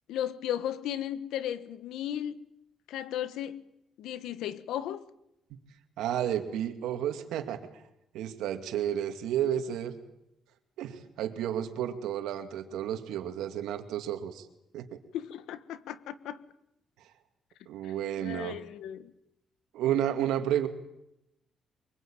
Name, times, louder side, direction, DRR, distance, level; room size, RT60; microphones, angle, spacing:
voice 1, 0.1-2.4 2.9-3.6 4.0-5.0 15.1-16.4 17.8-19.1, left 11 dB, 85° left, 1.4 m, -35 dB
voice 2, 6.0-7.6 8.1-10.0 10.8-14.5 14.7-15.0 17.7-18.6 19.7-20.7, right 10 dB, 90° right, 2.3 m, -31 dB
24.0 x 23.0 x 8.9 m
cardioid pair, 90°, 0 cm